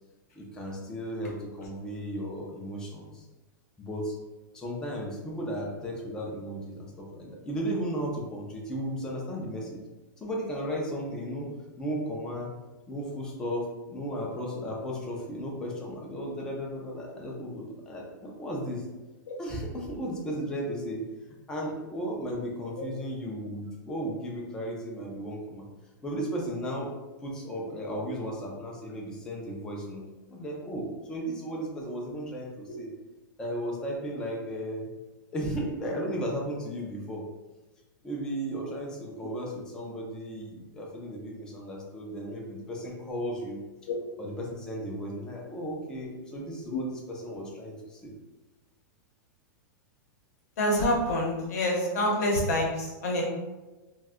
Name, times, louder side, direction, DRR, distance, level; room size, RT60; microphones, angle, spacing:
voice 1, 0.4-3.2 3.8-4.2 4.5-9.8 10.2-11.5 11.8-12.5 12.9-18.8 19.4-21.0 21.5-25.7 26.0-26.9 27.2-30.0 30.3-32.9 33.4-34.9 35.3-37.2 38.0-43.6 44.2-48.1, equal, 5° left, -2 dB, 0.3 m, -35 dB
voice 2, 50.6-53.2, left 1 dB, 50° left, -1 dB, 0.8 m, -27 dB
2.5 x 2.1 x 3.5 m, 1.2 s
supercardioid pair, 175°, 11 cm